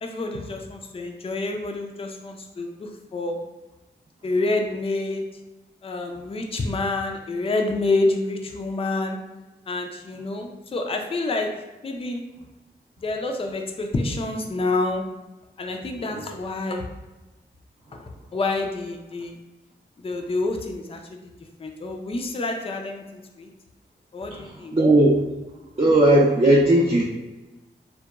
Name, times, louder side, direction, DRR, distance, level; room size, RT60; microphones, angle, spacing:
voice 1, 0.0-3.4 4.2-5.2 5.8-9.2 9.7-11.5 11.8-12.2 13.0-15.0 15.6-16.8 17.9-19.4 20.0-21.3 21.6-23.5 24.1-24.7, left 2 dB, 30° left, 3 dB, 0.4 m, -28 dB
voice 2, 24.3-25.2 25.8-27.0, right 1 dB, 30° right, -4 dB, 0.5 m, -17 dB
2.8 x 2.1 x 2.3 m, 1.1 s
cardioid pair, 40°, 20 cm